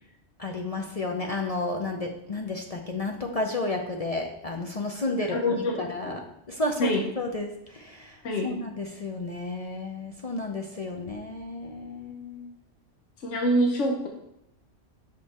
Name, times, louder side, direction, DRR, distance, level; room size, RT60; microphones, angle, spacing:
voice 1, 0.4-6.2 6.5-6.9 7.2-12.5, left 2 dB, 45° left, 2 dB, 0.5 m, -32 dB
voice 2, 5.3-6.2 6.8-7.0 8.2-8.5 13.2-14.1, equal, 80° left, 2 dB, 1.1 m, -26 dB
6.1 x 5.2 x 4.1 m, 0.82 s
omnidirectional pair, 1.2 m